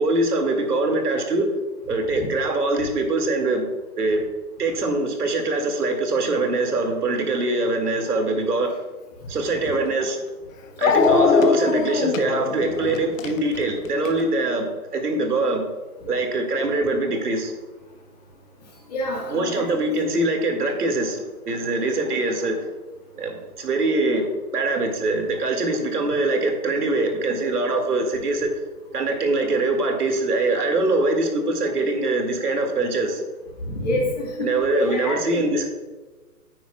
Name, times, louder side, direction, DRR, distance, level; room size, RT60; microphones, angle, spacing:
voice 1, 0.0-1.5 1.9-3.7 4.0-4.2 4.6-8.8 9.3-10.2 10.8-15.6 16.1-17.5 19.3-22.7 23.2-24.3 24.5-28.5 28.9-33.2 34.4-35.7, right 2 dB, 90° right, 4 dB, 2.2 m, -23 dB
Dog, 9.7-9.8 10.8-14.2, left 5 dB, 60° left, 0.8 m, -21 dB
voice 2, 18.9-19.7 33.7-35.4, left 1 dB, 25° left, -3 dB, 1.8 m, -27 dB
10.0 x 9.2 x 2.3 m, 1.2 s
hypercardioid pair, 175°, 45 cm